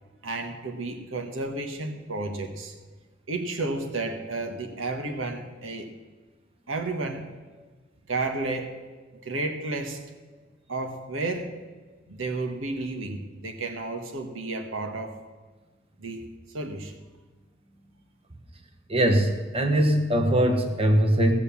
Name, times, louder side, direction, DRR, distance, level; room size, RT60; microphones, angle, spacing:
voice 1, 0.2-2.7 3.3-5.9 6.7-7.2 8.1-8.7 9.2-10.0 10.7-11.5 12.1-15.2 16.0-16.2 16.5-16.9, right 2 dB, 90° right, 5 dB, 1.5 m, -32 dB
voice 2, 18.9-21.3, right 1 dB, 30° right, 4 dB, 1.4 m, -21 dB
16.5 x 6.9 x 7.1 m, 1.3 s
head